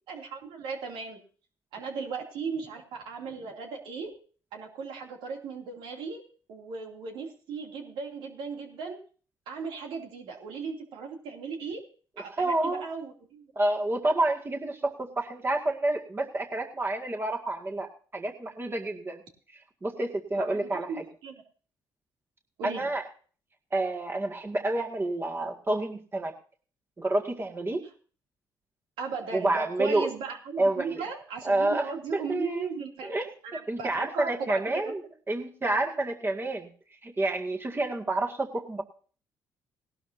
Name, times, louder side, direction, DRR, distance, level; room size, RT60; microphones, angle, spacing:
voice 1, 0.1-1.2 1.7-4.2 4.5-6.2 6.5-9.0 9.5-11.8 12.2-13.5 20.3-21.4 22.6-22.9 29.0-34.9, right 5 dB, 85° right, 2 dB, 2.7 m, -37 dB
voice 2, 12.4-12.8 13.6-17.9 18.1-19.2 19.8-21.1 22.6-23.0 23.7-26.3 27.0-27.8 29.3-30.1 30.6-31.0 31.4-31.9 32.3-32.7 33.0-33.3 33.7-35.0 35.3-36.7 37.0-38.8, right 2 dB, 25° right, 2 dB, 2.0 m, -29 dB
18.5 x 12.0 x 2.7 m, 0.41 s
supercardioid pair, 70°, 8 cm